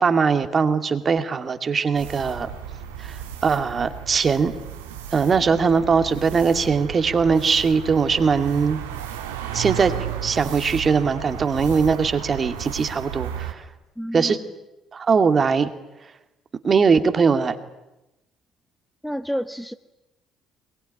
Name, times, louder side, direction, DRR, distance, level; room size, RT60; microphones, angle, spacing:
voice 1, 0.0-2.5 3.0-3.2 3.4-4.5 5.1-8.8 9.5-9.9 10.2-13.6 14.1-14.4 14.9-15.7 16.6-17.6, right 5 dB, 40° right, 9 dB, 2.3 m, -20 dB
sound 1, 1.9-13.5, right 9 dB, 90° right, 2.3 m, -34 dB
voice 2, 14.0-14.4 19.0-19.7, equal, ahead, 9 dB, 1.1 m, -29 dB
22.5 x 22.5 x 10.0 m, 0.98 s
hypercardioid pair, 55°, 0 cm